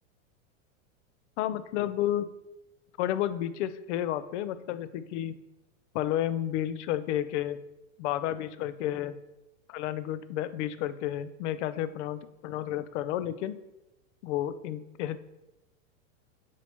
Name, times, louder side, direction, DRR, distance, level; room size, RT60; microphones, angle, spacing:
voice 1, 1.4-2.3 3.0-5.4 5.9-7.6 8.0-9.2 9.7-13.6 14.2-15.2, left 12 dB, 60° left, 13 dB, 0.5 m, -31 dB
5.6 x 4.5 x 4.4 m, 0.97 s
supercardioid pair, 150°, 41 cm